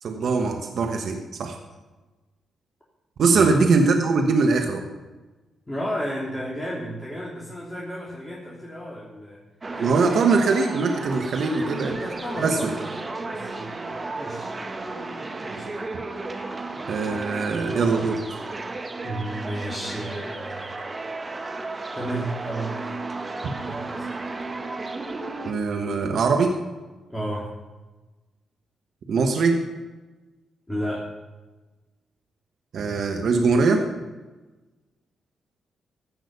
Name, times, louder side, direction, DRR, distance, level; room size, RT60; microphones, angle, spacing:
voice 1, 0.0-1.6 3.2-4.8 9.8-12.0 12.4-12.7 16.9-18.4 25.4-26.5 29.1-29.6 32.7-33.8, right 4 dB, 65° right, 4 dB, 1.2 m, -22 dB
voice 2, 5.7-9.4 9.7-9.9 11.4-13.8 14.1-14.5 15.5-15.7 19.0-20.8 21.9-22.8 23.6-24.1 27.1-27.5 30.7-31.1, equal, 15° left, -6 dB, 3.3 m, -32 dB
sound 1, 9.6-25.5, right 3 dB, 35° right, 1.4 m, -33 dB
15.5 x 6.2 x 6.9 m, 1.2 s
hypercardioid pair, 45°, 0 cm